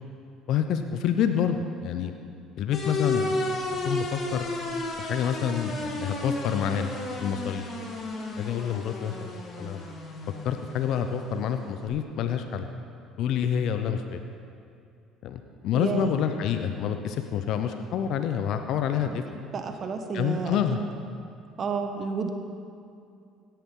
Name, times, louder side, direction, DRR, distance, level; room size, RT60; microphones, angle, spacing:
voice 1, 0.5-2.1 2.6-4.5 5.0-6.9 7.2-7.6 8.4-9.3 9.6-9.8 10.4-12.7 13.2-14.2 15.2-19.2 20.1-20.8, left 8 dB, 65° left, 7 dB, 0.6 m, -28 dB
sound 1, 2.7-11.9, left 2 dB, 45° left, 2.1 m, -33 dB
voice 2, 15.8-16.1 19.0-19.2 19.5-20.8 21.6-22.3, right 5 dB, 45° right, 6 dB, 1.1 m, -31 dB
17.0 x 10.0 x 3.8 m, 2.4 s
hypercardioid pair, 65°, 0 cm